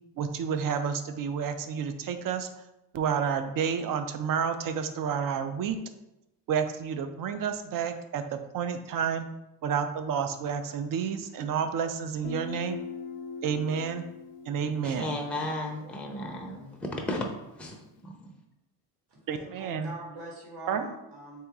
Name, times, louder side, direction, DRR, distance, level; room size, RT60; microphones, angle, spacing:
voice 1, 0.2-2.5 2.9-5.8 6.5-9.3 9.6-12.8 13.4-14.1 14.5-15.2 19.3-19.9 20.7-20.9, right 7 dB, 50° right, 9 dB, 0.5 m, -30 dB
Guitar, 12.2-15.9, left 6 dB, 80° left, 0.7 m, -41 dB
voice 2, 14.8-17.3 17.5-18.3, left 1 dB, 5° left, 1 dB, 0.5 m, -34 dB
voice 3, 19.1-21.4, right 1 dB, 65° right, -1 dB, 1.5 m, -43 dB
3.8 x 2.8 x 3.5 m, 0.89 s
cardioid pair, 115°, 44 cm